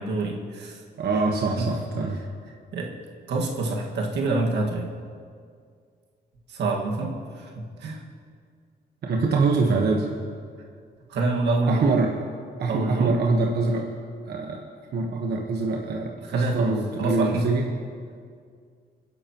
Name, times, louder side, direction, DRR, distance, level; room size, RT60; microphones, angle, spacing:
voice 1, 0.0-0.8 1.6-1.7 2.7-2.9 3.3-4.9 6.5-8.0 11.1-12.0 12.7-13.2 16.2-17.5, right 2 dB, 85° right, 0 dB, 1.9 m, -27 dB
voice 2, 1.0-2.2 9.0-10.1 11.7-12.1 12.6-13.9 14.2-14.6 14.9-17.7, right 3 dB, 65° right, 0 dB, 1.3 m, -24 dB
28.0 x 10.5 x 3.1 m, 2.1 s
cardioid pair, 110°, 17 cm